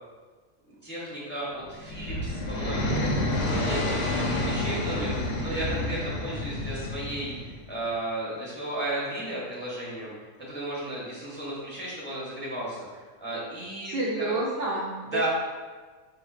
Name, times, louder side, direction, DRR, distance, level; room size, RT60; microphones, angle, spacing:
voice 1, 0.8-3.1 3.4-7.3 7.7-10.1 10.5-14.4 15.1-15.3, right 1 dB, 10° left, -7 dB, 0.7 m, -34 dB
sound 1, 1.6-7.6, left 1 dB, 85° left, 0.3 m, -29 dB
voice 2, 13.8-15.3, right 2 dB, 65° right, -3 dB, 0.6 m, -29 dB
5.1 x 2.6 x 2.4 m, 1.4 s
omnidirectional pair, 1.4 m